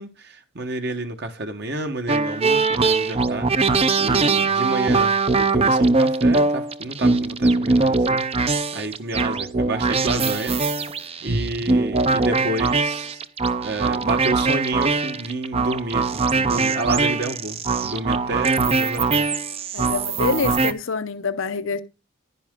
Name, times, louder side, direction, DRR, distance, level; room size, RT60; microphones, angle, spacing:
voice 1, 0.0-3.5 4.0-10.6 11.2-13.2 13.6-19.3, right 2 dB, 55° right, 1.4 m, -30 dB
sound 1, 2.1-20.7, right 3 dB, 30° right, 0.6 m, -21 dB
voice 2, 19.7-21.8, left 4 dB, 70° left, 0.8 m, -26 dB
11.0 x 10.0 x 3.7 m
head